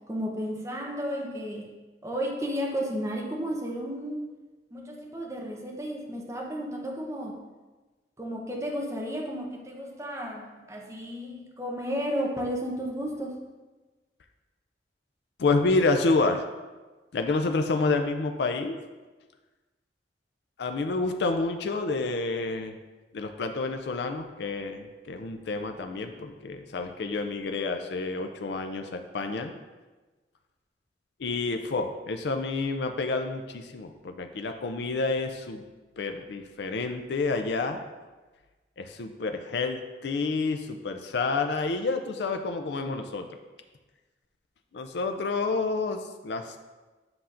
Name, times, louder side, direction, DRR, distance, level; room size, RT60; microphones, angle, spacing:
voice 1, 0.1-1.7 2.0-4.3 4.7-7.4 8.2-13.4, equal, 15° right, 0 dB, 0.7 m, -33 dB
voice 2, 15.4-16.4 17.1-18.8 20.6-22.8 23.1-29.5 31.2-35.6 36.0-37.8 38.8-43.3 44.7-46.6, left 3 dB, 75° left, 6 dB, 0.4 m, -29 dB
7.8 x 5.6 x 2.5 m, 1.2 s
head